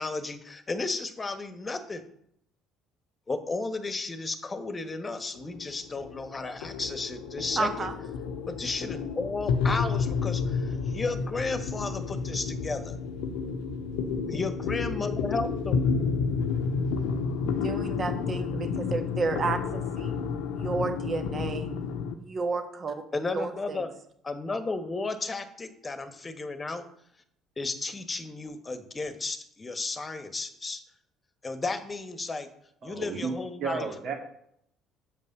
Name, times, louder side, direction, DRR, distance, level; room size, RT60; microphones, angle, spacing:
voice 1, 0.0-2.0 3.3-7.9 8.5-13.0 14.3-15.9 23.1-23.9 24.2-26.8 27.6-30.8 31.4-32.5 32.8-33.9, left 3 dB, 25° left, 9 dB, 1.3 m, -33 dB
sound 1, 5.3-22.1, left 5 dB, 75° left, 0.7 m, -30 dB
voice 2, 7.6-7.9 17.6-20.2 20.5-21.7 22.2-22.9 23.3-23.8, right 4 dB, 40° right, 6 dB, 1.5 m, -31 dB
voice 3, 32.8-33.3 33.6-34.1, right 5 dB, 60° right, 1 dB, 2.3 m, -32 dB
6.8 x 5.4 x 6.7 m, 0.70 s
hypercardioid pair, 60°, 0 cm